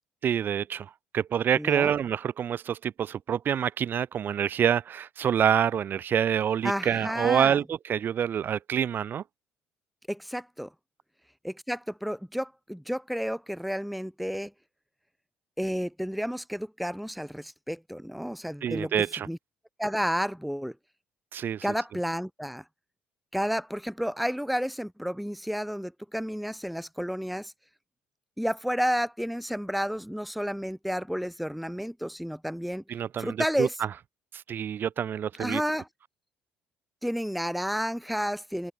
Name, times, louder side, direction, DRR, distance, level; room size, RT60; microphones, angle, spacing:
voice 1, 0.2-9.2 18.6-19.3 21.3-21.6 32.9-33.7 34.3-35.6, right 8 dB, 50° right, 3.1 m, -27 dB
voice 2, 1.5-1.9 6.6-7.6 10.1-10.7 11.4-14.5 15.6-18.9 19.3-19.4 19.8-20.7 21.6-22.6 23.3-27.5 28.4-32.8 33.2-33.8 35.4-35.9 37.0-38.7, equal, ahead, 1.8 m, -31 dB
supercardioid pair, 70°, 4 cm